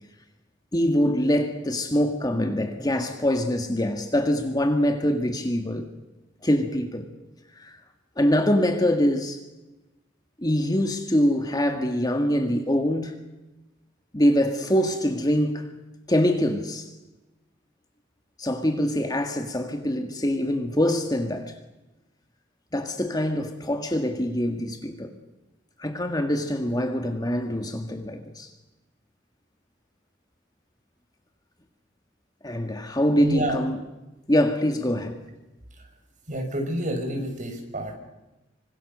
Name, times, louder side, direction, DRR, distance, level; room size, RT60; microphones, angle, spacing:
voice 1, 0.7-5.9 6.4-7.1 7.5-7.8 8.2-9.4 10.4-13.1 14.1-15.7 16.1-16.9 18.4-21.6 22.7-25.2 25.8-28.5 32.4-33.8 34.3-35.2, equal, 20° left, 1.9 m, -24 dB
voice 2, 33.2-33.6 35.8-35.9 36.3-38.0, right 1 dB, 40° right, 6.0 m, -29 dB
26.0 x 25.5 x 6.7 m
head